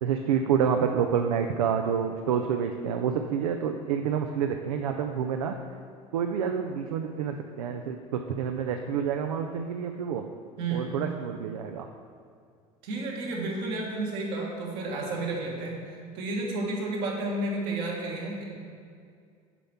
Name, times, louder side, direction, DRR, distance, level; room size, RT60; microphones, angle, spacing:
voice 1, 0.0-5.5 6.1-10.2 10.7-11.9, right 7 dB, 80° right, 5 dB, 0.4 m, -28 dB
voice 2, 10.6-10.9 12.8-18.4, right 2 dB, 65° right, -1 dB, 1.5 m, -31 dB
6.9 x 4.3 x 5.7 m, 2.2 s
hypercardioid pair, 70°, 18 cm